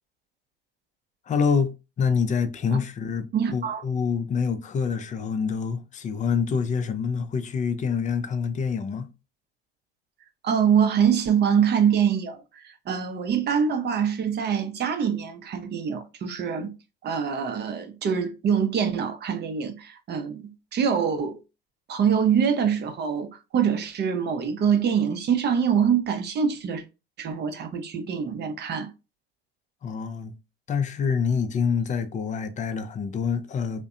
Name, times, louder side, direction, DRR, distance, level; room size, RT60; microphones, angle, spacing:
voice 1, 1.3-9.1 29.8-30.3 30.7-33.8, left 6 dB, 25° left, 0.4 m, -26 dB
voice 2, 3.3-3.8 10.4-16.7 17.0-21.4 21.9-26.8 27.2-28.9, right 7 dB, 35° right, 0.6 m, -24 dB
2.5 x 2.1 x 2.4 m
hypercardioid pair, 75°, 29 cm